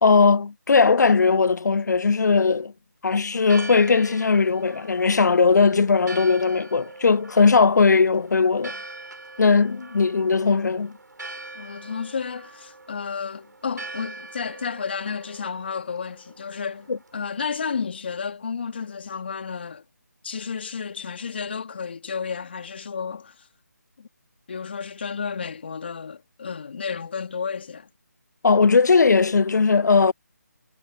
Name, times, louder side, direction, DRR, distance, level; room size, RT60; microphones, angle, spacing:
voice 1, 0.0-2.7 3.0-8.7 9.4-10.9 16.9-17.0 28.4-30.1, left 4 dB, 75° left, 0.4 m, -18 dB
Church bell, 3.3-17.4, right 2 dB, 80° right, 5.7 m, -42 dB
voice 2, 11.5-19.8 20.2-23.5 24.0-24.1 24.5-27.9, left 6 dB, 35° left, 2.8 m, -32 dB
figure-of-eight pair, 170°, 10 cm